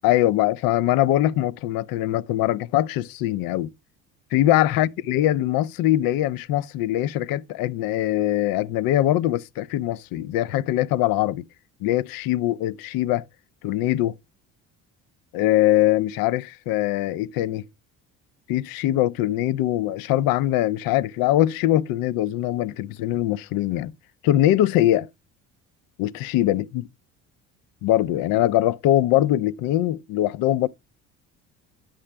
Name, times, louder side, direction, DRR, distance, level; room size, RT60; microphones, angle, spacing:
voice 1, 0.0-3.7 4.3-11.4 11.8-13.2 13.6-14.1 15.3-17.7 18.5-23.9 24.2-25.1 26.0-26.8 27.8-30.7, left 14 dB, 65° left, 0.6 m, -22 dB
8.9 x 5.7 x 3.3 m
supercardioid pair, 70°, 37 cm